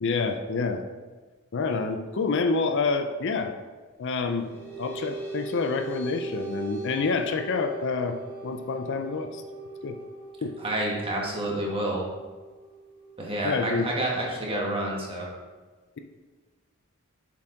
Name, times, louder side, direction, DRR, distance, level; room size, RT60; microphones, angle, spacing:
voice 1, 0.0-0.8 1.5-3.5 4.0-4.5 4.8-8.2 8.4-9.4 9.8-10.0 10.4-10.5 13.4-13.9, left 4 dB, 60° left, 6 dB, 0.5 m, -27 dB
sound 1, 4.1-15.1, right 2 dB, 5° left, 2.2 m, -40 dB
voice 2, 10.6-12.1 13.2-15.3, right 1 dB, 25° right, -2 dB, 1.4 m, -29 dB
7.0 x 4.8 x 3.8 m, 1.3 s
head